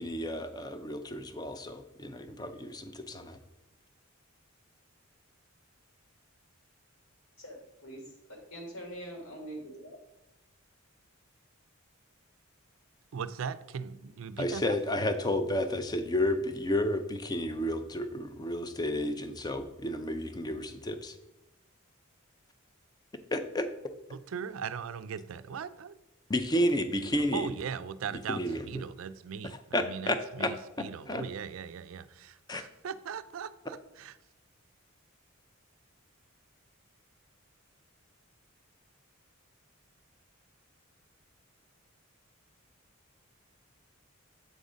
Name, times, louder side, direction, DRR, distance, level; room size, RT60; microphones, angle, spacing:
voice 1, 0.0-3.4 14.4-21.2 23.3-23.7 26.3-27.5 28.3-28.6 29.4-30.5 31.1-31.2 32.5-32.6, left 1 dB, 20° left, 0.5 m, -31 dB
voice 2, 7.4-8.0 8.5-10.0, right 1 dB, 75° left, 2.1 m, -43 dB
voice 3, 13.1-14.8 24.1-26.0 27.3-34.1, right 6 dB, 70° right, 0.4 m, -39 dB
7.9 x 3.9 x 4.9 m
head